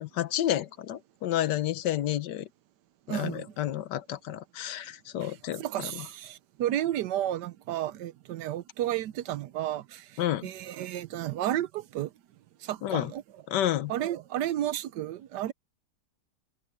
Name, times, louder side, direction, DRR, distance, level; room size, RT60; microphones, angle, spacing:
voice 1, 0.0-2.5 3.1-6.0 10.2-10.5 12.8-13.1 13.5-13.9, left 12 dB, 80° left, 1.4 m, -30 dB
voice 2, 3.1-3.5 5.2-12.1 12.6-13.2 13.9-15.5, right 12 dB, 75° right, 1.3 m, -32 dB
omnidirectional pair, 1.9 m